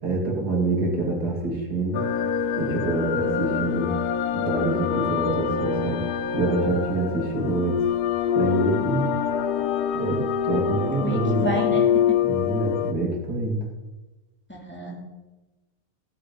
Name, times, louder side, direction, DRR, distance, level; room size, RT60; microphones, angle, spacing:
voice 1, 0.0-2.0 2.6-3.9 4.3-6.0 6.3-7.8 8.3-9.1 9.9-11.7 12.2-13.6, right 2 dB, 85° right, 0 dB, 3.0 m, -26 dB
sound 1, 1.9-12.9, left 8 dB, 90° left, 1.3 m, -25 dB
voice 2, 11.0-11.8 14.7-15.0, right 1 dB, 5° left, -3 dB, 2.8 m, -30 dB
16.0 x 7.5 x 5.3 m, 1.1 s
omnidirectional pair, 1.6 m